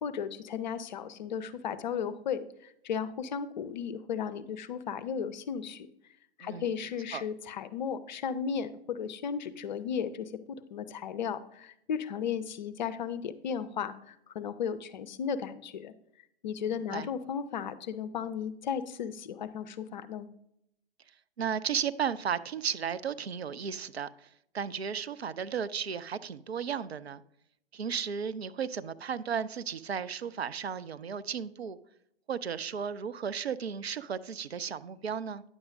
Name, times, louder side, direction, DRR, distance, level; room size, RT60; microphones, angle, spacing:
voice 1, 0.0-5.9 6.4-10.3 10.7-15.9 16.4-20.3, left 7 dB, 45° left, 13 dB, 0.6 m, -35 dB
voice 2, 6.4-6.7 7.1-7.2 16.9-17.1 21.4-24.3 24.5-27.2 27.7-31.8 32.3-35.4, right 7 dB, 75° right, 15 dB, 0.5 m, -34 dB
9.7 x 7.1 x 2.6 m, 0.76 s
figure-of-eight pair, 115°, 31 cm